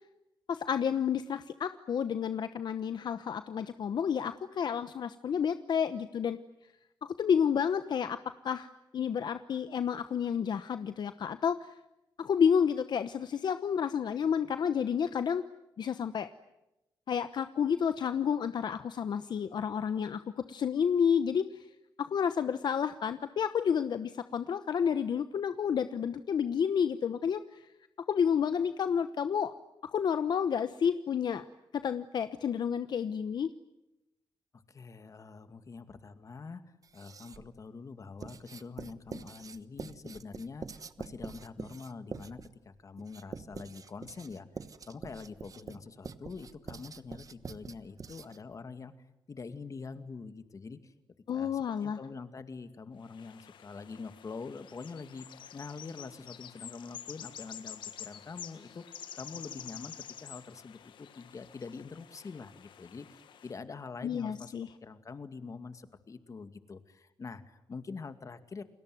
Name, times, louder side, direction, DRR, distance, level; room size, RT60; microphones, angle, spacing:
voice 1, 0.5-6.4 7.0-8.2 8.4-11.7 12.2-15.4 15.8-16.3 17.1-20.2 20.5-21.7 22.0-27.7 28.1-29.5 29.8-31.4 31.7-33.5 51.3-52.0 64.0-64.7, left 7 dB, 65° left, 11 dB, 1.0 m, -30 dB
voice 2, 34.7-36.6 36.9-42.4 42.6-44.5 44.9-48.9 49.3-50.9 51.3-64.6 64.8-68.6, left 4 dB, 40° left, 10 dB, 2.2 m, -45 dB
Writing, 36.8-37.6 38.2-48.5, right 5 dB, 45° right, 1.2 m, -45 dB
sound 1, 53.0-63.6, left 9 dB, 85° left, 1.7 m, -48 dB
30.0 x 21.0 x 9.4 m, 0.94 s
cardioid pair, 100°, 8 cm